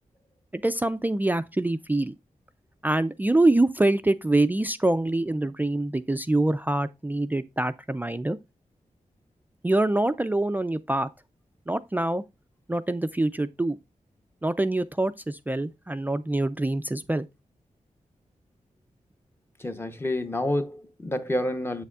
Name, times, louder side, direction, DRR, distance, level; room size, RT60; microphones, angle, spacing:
voice 1, 0.5-2.1 2.8-8.4 9.6-11.1 11.7-12.2 12.7-13.8 14.4-17.3, right 2 dB, 15° right, 0.3 m, -25 dB
voice 2, 19.6-21.8, left 1 dB, 15° left, 0.7 m, -28 dB
7.7 x 6.7 x 2.3 m
wide cardioid pair, 125°, 14 cm